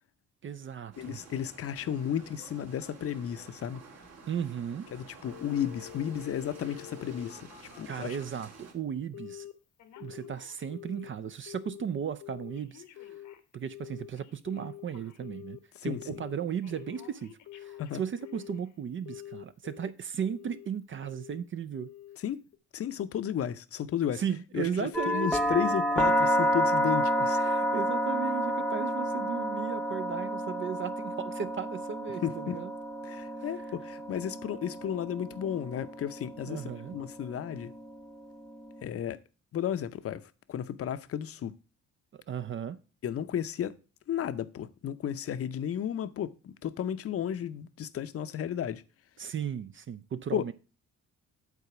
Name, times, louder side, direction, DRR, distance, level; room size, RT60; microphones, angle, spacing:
voice 1, 0.4-1.2 4.3-4.9 7.9-9.5 10.0-12.8 13.5-21.9 24.1-25.6 27.2-32.7 36.5-37.0 42.1-42.8 49.2-50.5, right 8 dB, 40° right, 0.5 m, -36 dB
sound 1, 0.9-8.7, right 4 dB, 55° right, 2.0 m, -51 dB
voice 2, 1.0-3.8 4.9-8.2 15.7-16.2 17.8-18.0 22.2-22.4 22.7-24.2 24.5-27.4 32.2-32.6 33.0-37.7 38.8-39.2 39.5-40.2 40.5-41.6 43.0-43.8 44.1-48.8 50.3-50.4, left 9 dB, 50° left, 0.6 m, -33 dB
Telephone, 5.2-8.5 9.1-9.5 9.8-11.1 11.5-11.8 12.2-15.6 16.0-16.3 16.6-18.7 19.1-19.9 20.3-20.7 21.0-21.4 21.8-22.2 22.5-22.6, left 12 dB, 75° left, 1.0 m, -47 dB
sound 2, 24.9-38.8, equal, ahead, 0.7 m, -30 dB
8.2 x 4.0 x 5.8 m
cardioid pair, 90°, 30 cm